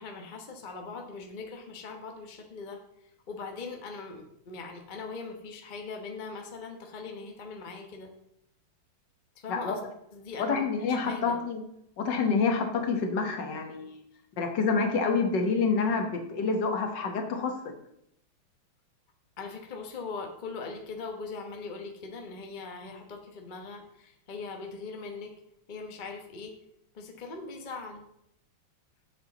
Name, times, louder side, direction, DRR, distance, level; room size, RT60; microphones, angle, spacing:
voice 1, 0.0-2.8 3.3-8.1 9.4-9.8 10.1-10.6 10.9-11.3 19.4-25.3 25.7-26.5 26.9-28.0, left 4 dB, 35° left, 3 dB, 0.8 m, -40 dB
voice 2, 10.4-11.6 12.0-14.0 14.4-17.7, left 4 dB, 60° left, 4 dB, 1.6 m, -27 dB
7.9 x 7.2 x 3.9 m, 0.75 s
omnidirectional pair, 2.4 m